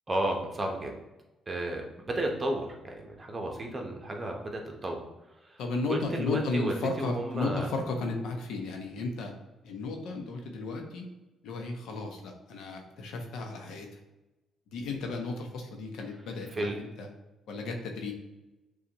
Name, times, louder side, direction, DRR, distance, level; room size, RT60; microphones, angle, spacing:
voice 1, 0.1-1.0 1.5-5.0 5.5-5.6 5.9-7.7 16.5-16.8, right 1 dB, 30° right, 2 dB, 0.9 m, -33 dB
voice 2, 5.6-9.3 9.6-11.0 11.4-13.9 14.7-17.1 17.5-18.1, left 3 dB, 80° left, 3 dB, 0.8 m, -34 dB
6.8 x 2.4 x 2.9 m, 1.0 s
cardioid pair, 90°, 0 cm